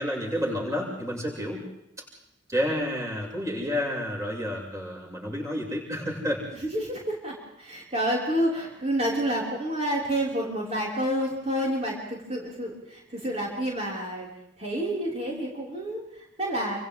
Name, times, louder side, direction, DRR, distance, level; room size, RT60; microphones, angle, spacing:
voice 1, 0.0-1.6 2.5-6.5, equal, 15° right, -1 dB, 7.3 m, -30 dB
voice 2, 6.6-14.3 14.6-16.8, equal, 35° right, -4 dB, 6.2 m, -29 dB
30.0 x 28.5 x 3.9 m, 0.82 s
head